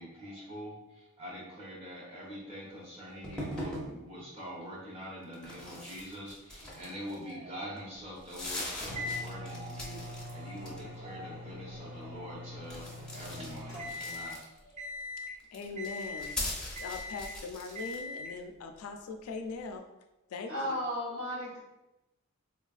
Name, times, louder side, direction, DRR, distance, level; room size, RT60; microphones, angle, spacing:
voice 1, 0.0-14.9, equal, 25° right, -6 dB, 0.8 m, -44 dB
sound 1, 3.2-3.9 5.3-7.3 7.8-7.9 8.2-10.3 10.6-11.1 12.6-14.7 15.4-18.0, left 1 dB, 5° left, 0.5 m, -41 dB
sound 2, 8.8-14.4 14.8-15.4 15.8-16.4 16.8-17.4 17.8-18.4, left 2 dB, 85° right, 1.4 m, -41 dB
voice 2, 15.5-16.3 16.8-19.8 20.3-20.8, left 4 dB, 70° left, 6 dB, 0.3 m, -41 dB
voice 3, 20.5-21.6, equal, 65° right, -5 dB, 1.0 m, -34 dB
3.2 x 2.3 x 2.3 m, 0.98 s
head